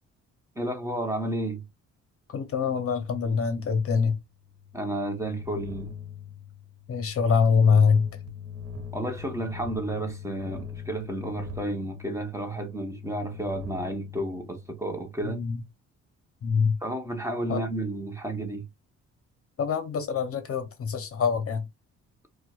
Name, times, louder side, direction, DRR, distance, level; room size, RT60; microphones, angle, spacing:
voice 1, 0.6-1.6 4.7-5.9 8.9-15.4 16.8-18.7, right 1 dB, 10° right, 0.9 m, -32 dB
voice 2, 2.3-4.2 6.9-8.1 15.2-15.6 16.4-16.8 17.5-17.6 19.6-21.7, left 5 dB, 50° left, 0.8 m, -24 dB
sound 1, 4.4-15.0, left 6 dB, 60° right, 1.2 m, -41 dB
4.3 x 2.3 x 2.3 m
cardioid pair, 90°, 30 cm